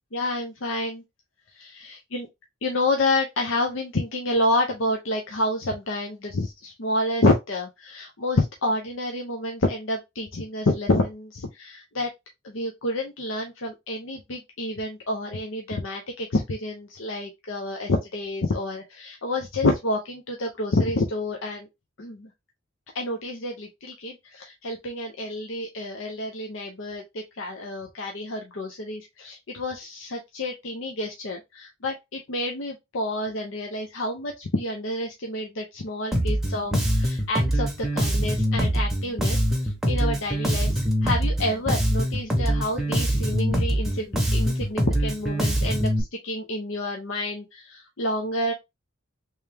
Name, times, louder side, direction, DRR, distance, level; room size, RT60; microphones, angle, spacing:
voice 1, 0.1-1.0 1.5-2.3 2.6-12.1 12.4-21.7 22.0-22.3 22.9-48.5, left 2 dB, 70° left, 0.7 m, -28 dB
Bass guitar, 36.1-46.0, equal, ahead, 0.8 m, -24 dB
3.4 x 3.1 x 3.3 m
head